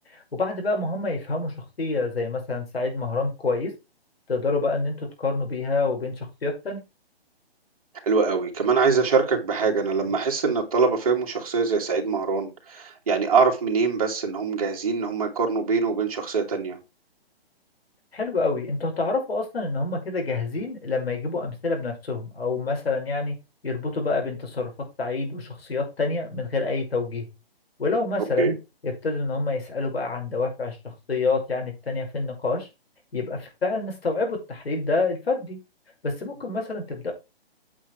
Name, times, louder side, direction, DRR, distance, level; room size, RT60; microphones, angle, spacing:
voice 1, 0.1-3.7 4.3-6.8 18.1-23.3 23.6-24.7 25.0-27.3 27.8-28.6 28.8-32.7 33.1-35.6 36.0-37.1, left 3 dB, 70° left, 2 dB, 5.8 m, -27 dB
voice 2, 8.1-16.8 28.4-28.5, right 5 dB, 35° right, 0 dB, 2.5 m, -23 dB
8.8 x 6.4 x 4.6 m, 0.26 s
hypercardioid pair, 180°, 31 cm